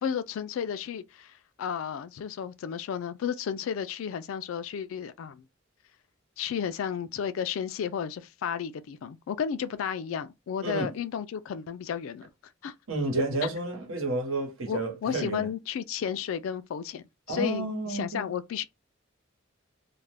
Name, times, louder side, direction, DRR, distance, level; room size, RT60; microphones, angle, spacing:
voice 1, 0.0-5.4 6.4-12.2 12.6-12.7 14.7-18.6, left 8 dB, 75° left, 0.3 m, -33 dB
voice 2, 10.6-10.9 12.9-15.5 17.3-18.3, right 2 dB, 80° right, 1.1 m, -31 dB
2.4 x 2.1 x 3.3 m
head